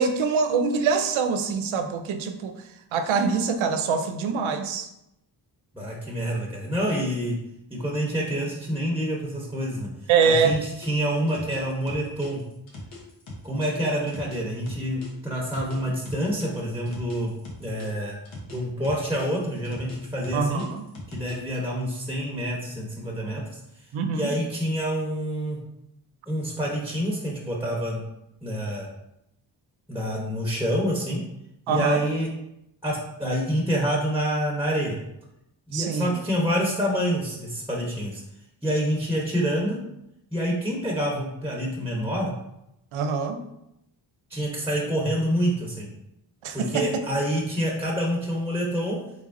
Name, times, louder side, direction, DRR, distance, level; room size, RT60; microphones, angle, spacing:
voice 1, 0.0-2.5 2.9-4.9 10.1-10.6 20.3-20.8 23.9-24.3 31.7-32.0 35.7-36.1 42.9-43.4 46.4-46.9, right 5 dB, 85° right, 7 dB, 0.5 m, -24 dB
voice 2, 5.7-7.4 7.7-9.9 10.2-12.4 13.4-17.3 17.6-18.2 18.4-20.6 21.1-23.6 24.1-25.6 26.3-28.0 28.4-28.9 29.9-31.2 31.7-32.3 32.8-35.0 35.7-38.2 38.6-39.8 40.3-42.3 44.3-45.9 46.5-49.0, equal, 5° right, -3 dB, 0.9 m, -27 dB
sound 1, 10.5-15.1 15.5-18.6 18.8-21.6, left 2 dB, 80° left, 1.1 m, -41 dB
3.8 x 3.4 x 2.5 m, 0.84 s
cardioid pair, 55°, 47 cm